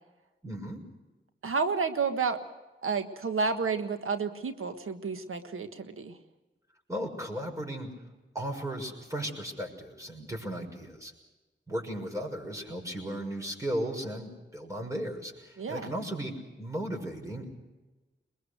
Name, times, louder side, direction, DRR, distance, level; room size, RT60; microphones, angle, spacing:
voice 1, 0.4-0.8 6.9-7.9 8.3-11.1 11.7-17.5, right 1 dB, 15° right, 1 dB, 6.2 m, -36 dB
voice 2, 1.4-2.4 2.8-6.2 15.6-15.9, right 5 dB, 85° right, 8 dB, 1.5 m, -30 dB
22.5 x 21.0 x 6.7 m, 1.2 s
cardioid pair, 40°, 21 cm